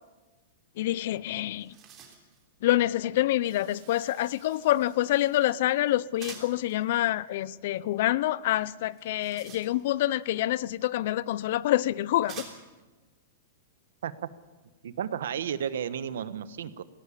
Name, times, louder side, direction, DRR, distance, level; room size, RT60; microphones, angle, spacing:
voice 1, 0.8-1.8 2.6-12.4, left 14 dB, 55° left, 0.6 m, -27 dB
sound 1, 1.1-1.2 1.4-2.4 6.2-6.7 8.9-10.1 11.2-11.3 12.3-12.8, right 7 dB, 25° right, 3.3 m, -46 dB
Shatter, 3.4-6.9, right 10 dB, 40° right, 2.8 m, -59 dB
voice 2, 14.8-16.8, right 8 dB, 80° right, 1.2 m, -33 dB
18.5 x 17.5 x 8.5 m
supercardioid pair, 165°, 0 cm